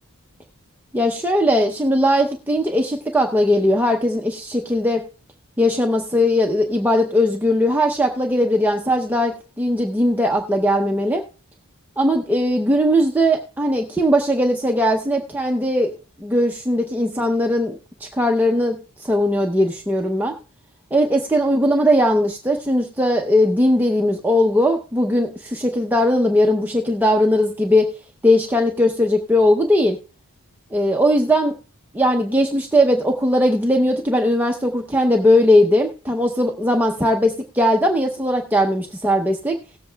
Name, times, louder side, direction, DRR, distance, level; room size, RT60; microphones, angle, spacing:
voice 1, 0.9-5.0 5.6-11.2 12.0-15.9 16.2-20.3 20.9-27.9 28.2-30.0 30.7-31.5 31.9-39.6, equal, 10° right, 2 dB, 0.6 m, -19 dB
18.0 x 7.6 x 2.2 m, 0.36 s
head